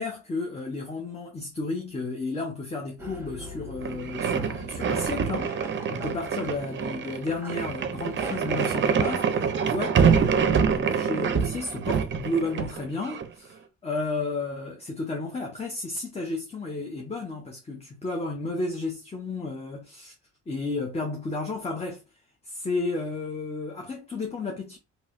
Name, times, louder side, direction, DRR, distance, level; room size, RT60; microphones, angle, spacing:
voice 1, 0.0-20.1 20.5-22.0 22.4-24.8, left 3 dB, 20° left, 0.7 m, -32 dB
sound 1, 3.0-9.3, right 1 dB, 10° right, 1.3 m, -41 dB
sound 2, 3.8-13.3, right 6 dB, 40° right, 0.5 m, -26 dB
3.1 x 2.8 x 2.5 m
cardioid pair, 90°, 30 cm